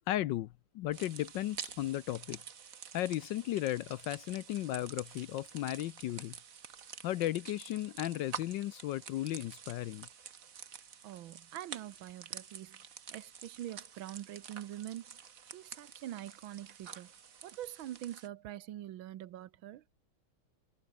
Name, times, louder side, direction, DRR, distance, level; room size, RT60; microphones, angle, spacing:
voice 1, 0.1-2.4 2.9-6.3 7.0-10.1, left 14 dB, 75° left, 1.2 m, -35 dB
sound 1, 0.9-18.3, right 7 dB, 45° right, 1.5 m, -49 dB
voice 2, 11.0-12.8 13.1-15.0 15.5-17.1 17.4-19.8, right 13 dB, 75° right, 1.6 m, -44 dB
omnidirectional pair, 2.3 m